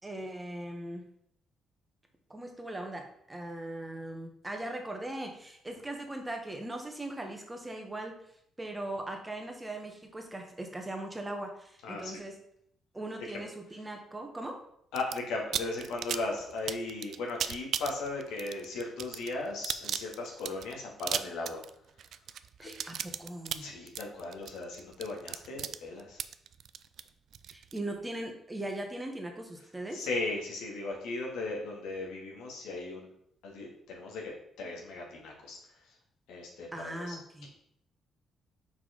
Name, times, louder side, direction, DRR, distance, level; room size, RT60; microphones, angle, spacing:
voice 1, 0.0-1.0 2.3-8.2 8.6-12.4 12.9-14.6 22.6-23.7 27.5-30.0 36.7-37.5, right 1 dB, 15° right, 3 dB, 1.3 m, -39 dB
voice 2, 11.8-12.1 14.9-21.6 23.6-26.2 29.9-33.1 33.4-34.3 34.6-35.6 36.3-37.2 37.4-37.5, left 3 dB, 90° left, -1 dB, 2.0 m, -37 dB
sound 1, 14.9-15.2 15.5-27.8, right 9 dB, 70° right, 0.4 m, -36 dB
5.5 x 4.7 x 5.1 m, 0.71 s
cardioid pair, 90°, 0 cm